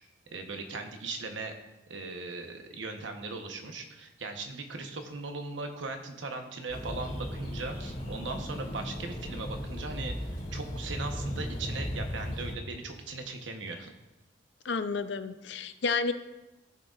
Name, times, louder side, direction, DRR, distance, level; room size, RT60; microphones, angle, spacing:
voice 1, 0.3-1.5 1.9-10.2 10.5-13.9, right 3 dB, 90° right, 4 dB, 1.0 m, -38 dB
sound 1, 6.7-12.5, equal, 45° left, 3.1 m, -36 dB
voice 2, 14.6-16.1, left 4 dB, 75° left, 11 dB, 0.5 m, -30 dB
14.5 x 6.4 x 2.4 m, 1.0 s
head